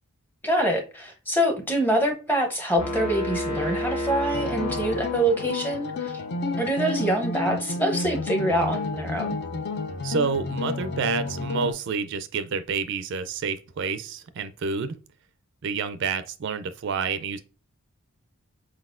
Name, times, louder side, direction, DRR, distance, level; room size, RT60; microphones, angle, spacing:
voice 1, 0.4-6.2 6.6-9.4, right 1 dB, 10° left, 0.7 m, -25 dB
Epic Horn, 2.8-5.7, equal, 80° left, 1.3 m, -30 dB
sound 1, 4.3-11.7, left 3 dB, 50° left, 0.4 m, -31 dB
voice 2, 10.0-14.9 15.6-17.4, right 5 dB, 55° right, 0.4 m, -29 dB
4.8 x 4.0 x 2.5 m
head